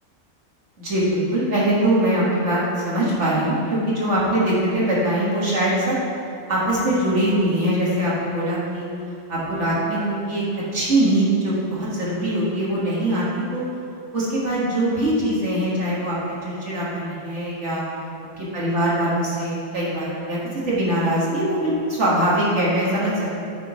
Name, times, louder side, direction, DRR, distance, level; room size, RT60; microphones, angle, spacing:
voice 1, 0.8-6.0 6.5-10.5 10.7-13.7 14.1-17.8 18.5-23.3, right 1 dB, 50° right, -7 dB, 1.8 m, -22 dB
8.3 x 3.7 x 4.9 m, 2.5 s
omnidirectional pair, 1.6 m